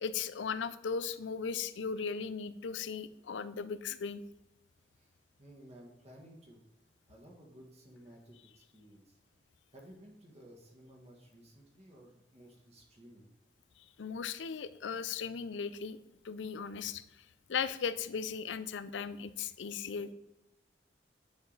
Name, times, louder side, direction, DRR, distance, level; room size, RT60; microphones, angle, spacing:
voice 1, 0.0-4.2 14.0-16.0 16.2-17.0 17.5-20.1, left 6 dB, 90° left, 14 dB, 0.5 m, -37 dB
voice 2, 4.9-6.6 7.1-9.2 9.7-13.3, equal, 35° right, 0 dB, 1.8 m, -56 dB
9.4 x 4.8 x 4.0 m, 0.92 s
head